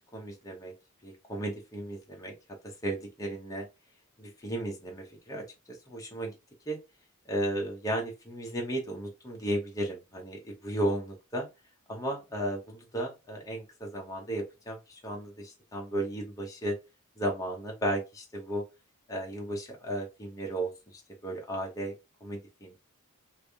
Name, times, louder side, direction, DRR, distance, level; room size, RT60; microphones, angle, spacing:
voice 1, 0.1-0.7 1.0-2.3 2.6-3.7 4.2-6.3 6.7-6.8 7.3-11.5 11.9-16.8 17.2-18.6 19.1-21.9 22.2-22.7, right 1 dB, 15° left, 0.8 m, -34 dB
3.3 x 2.6 x 3.4 m
head